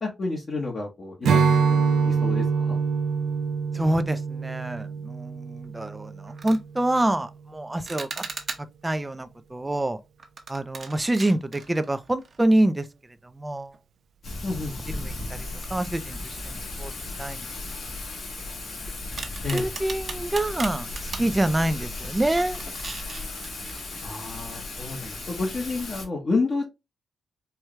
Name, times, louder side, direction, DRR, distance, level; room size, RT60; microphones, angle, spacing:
voice 1, 0.0-2.8 14.4-14.7 19.4-19.7 24.0-26.6, left 3 dB, 45° left, 1.1 m, -30 dB
Strum, 1.2-6.7, right 5 dB, 85° right, 0.4 m, -25 dB
voice 2, 3.7-8.2 8.6-10.0 10.5-12.9 13.3-13.7 14.9-16.9 17.2-17.5 19.5-22.6, right 1 dB, 15° right, 0.5 m, -26 dB
sound 1, 5.6-5.8 6.3-6.6 7.9-8.9 10.2-12.6 12.9-13.0 13.7-13.8 15.6-16.3 16.6-16.7 17.3-18.7 19.2-21.3 21.8-22.1 22.4-24.4, right 4 dB, 45° right, 0.8 m, -39 dB
Thunder / Rain, 14.2-26.1, left 2 dB, 65° left, 1.6 m, -36 dB
4.6 x 2.3 x 3.1 m
cardioid pair, 85°, 0 cm